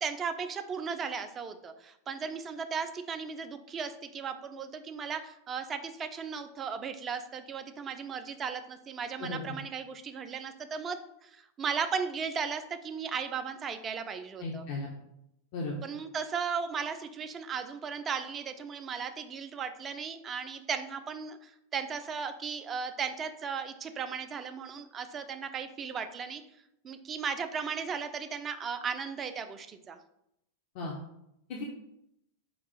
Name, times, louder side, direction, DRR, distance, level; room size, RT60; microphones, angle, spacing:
voice 1, 0.0-14.6 15.8-26.4 26.8-30.0, right 6 dB, 25° right, 8 dB, 0.4 m, -36 dB
voice 2, 14.4-14.9 15.5-15.7 30.8-30.9 31.5-31.6, left 3 dB, 45° left, -1 dB, 0.6 m, -35 dB
4.6 x 2.4 x 3.9 m, 0.80 s
figure-of-eight pair, 90°, 0 cm